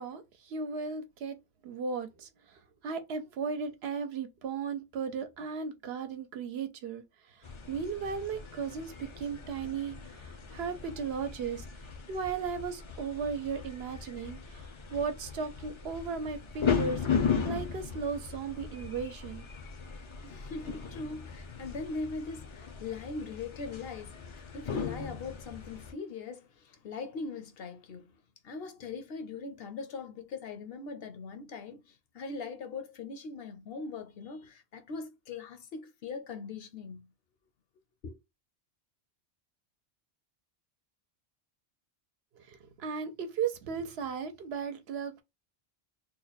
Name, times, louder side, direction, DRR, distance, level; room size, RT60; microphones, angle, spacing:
voice 1, 0.0-1.4 1.6-2.3 2.8-7.0 7.3-11.6 12.1-17.1 17.4-19.5 42.4-45.2, right 5 dB, 70° right, 0.9 m, -36 dB
sound 1, 7.4-25.9, left 6 dB, 40° left, 0.4 m, -37 dB
voice 2, 20.2-24.2 24.5-28.2 28.4-37.1 38.0-38.2, left 4 dB, 65° left, 0.8 m, -41 dB
3.0 x 2.2 x 3.9 m
omnidirectional pair, 1.1 m